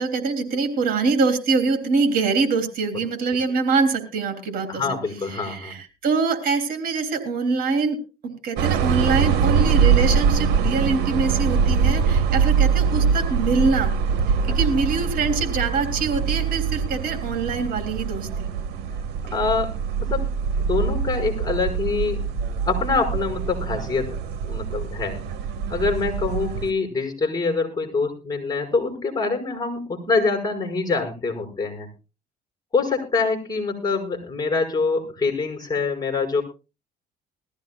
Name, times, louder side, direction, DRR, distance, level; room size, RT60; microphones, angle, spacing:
voice 1, 0.0-4.8 5.3-8.0 8.2-13.9 14.5-18.5, right 4 dB, 60° right, 6 dB, 3.5 m, -24 dB
voice 2, 4.7-5.7 14.5-14.6 19.3-19.7 20.1-22.2 22.7-24.2 24.4-25.2 25.7-31.9 32.7-36.4, left 4 dB, 20° left, 4 dB, 5.5 m, -25 dB
sound 1, 8.6-26.7, right 6 dB, 75° right, 1.4 m, -23 dB
20.5 x 14.5 x 2.3 m, 0.30 s
cardioid pair, 110°, 17 cm